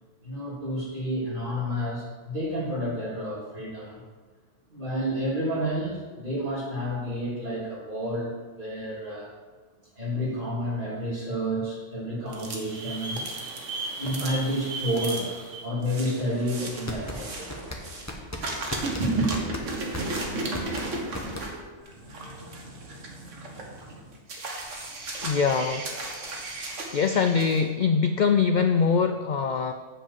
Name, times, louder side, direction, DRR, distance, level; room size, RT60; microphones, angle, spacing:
voice 1, 0.2-4.0 4.7-9.3 9.9-13.2 14.0-17.6 19.0-19.3, equal, 45° right, -7 dB, 3.4 m, -30 dB
sound 1, 12.3-18.1 18.4-27.6, right 2 dB, 90° right, 1.7 m, -35 dB
sound 2, 16.9-21.8, left 1 dB, 15° left, 1.0 m, -36 dB
voice 2, 25.2-25.9 26.9-29.7, left 5 dB, 60° left, 8 dB, 0.5 m, -23 dB
8.7 x 5.0 x 7.5 m, 1.4 s
omnidirectional pair, 1.2 m